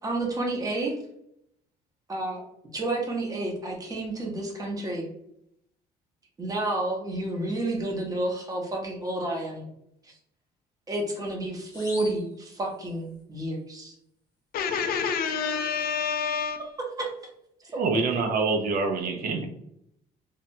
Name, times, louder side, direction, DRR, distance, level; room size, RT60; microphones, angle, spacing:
voice 1, 0.0-0.9 2.1-2.4 2.7-5.1 6.4-9.7 10.0-10.2 10.9-13.9 17.0-17.1 17.6-17.8, right 2 dB, 20° right, 0 dB, 0.8 m, -30 dB
sound 1, 11.7-13.2, left 2 dB, 20° left, 0.8 m, -45 dB
voice 2, 14.5-16.6, left 6 dB, 60° left, 7 dB, 0.4 m, -28 dB
voice 3, 17.8-19.5, right 4 dB, 60° right, 3 dB, 0.5 m, -26 dB
2.7 x 2.1 x 2.6 m, 0.75 s
cardioid pair, 110°, 17 cm